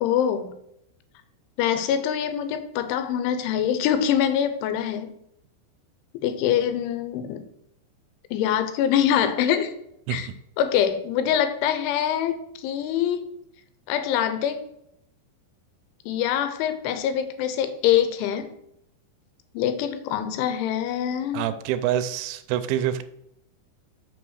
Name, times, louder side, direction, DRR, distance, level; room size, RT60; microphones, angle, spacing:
voice 1, 0.0-0.5 1.6-5.1 6.2-7.4 8.3-9.7 10.1-10.3 10.6-13.2 13.9-14.6 16.1-18.5 19.5-21.5, left 9 dB, 90° left, 10 dB, 3.3 m, -24 dB
voice 2, 21.3-23.0, right 11 dB, 85° right, 11 dB, 2.9 m, -26 dB
6.9 x 6.0 x 6.4 m, 0.77 s
omnidirectional pair, 5.3 m